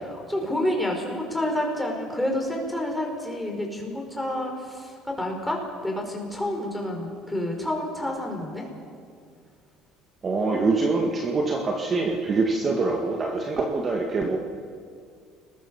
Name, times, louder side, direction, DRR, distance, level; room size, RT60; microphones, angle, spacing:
voice 1, 0.0-8.6, left 1 dB, 5° left, 0 dB, 5.1 m, -29 dB
voice 2, 10.2-14.4, right 3 dB, 30° right, 1 dB, 2.1 m, -24 dB
29.5 x 21.0 x 5.6 m, 2.2 s
cardioid pair, 130°, 0 cm